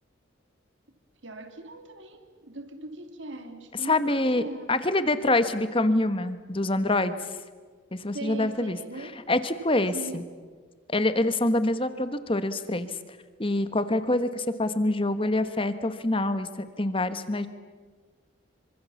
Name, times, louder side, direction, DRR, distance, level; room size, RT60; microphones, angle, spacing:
voice 1, 1.2-4.8 8.1-9.2 9.8-10.2, right 2 dB, 65° right, 7 dB, 2.9 m, -40 dB
voice 2, 3.8-7.4 7.9-8.8 9.3-10.2 10.9-13.0 13.4-17.5, left 2 dB, 25° left, 11 dB, 1.3 m, -26 dB
27.0 x 25.0 x 7.2 m, 1.5 s
head